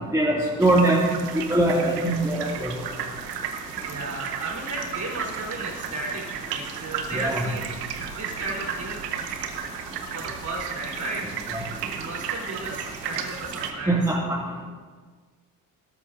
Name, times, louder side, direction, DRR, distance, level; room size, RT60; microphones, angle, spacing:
voice 1, 0.1-1.0 1.5-2.7 7.1-7.4 13.9-14.4, right 1 dB, 5° right, -4 dB, 2.5 m, -21 dB
sound 1, 0.6-13.7, right 7 dB, 85° right, 1.0 m, -34 dB
voice 2, 3.4-9.4 10.1-11.2 11.9-14.0, right 2 dB, 40° right, -2 dB, 4.2 m, -34 dB
18.5 x 13.0 x 2.7 m, 1.5 s
figure-of-eight pair, 45°, 47 cm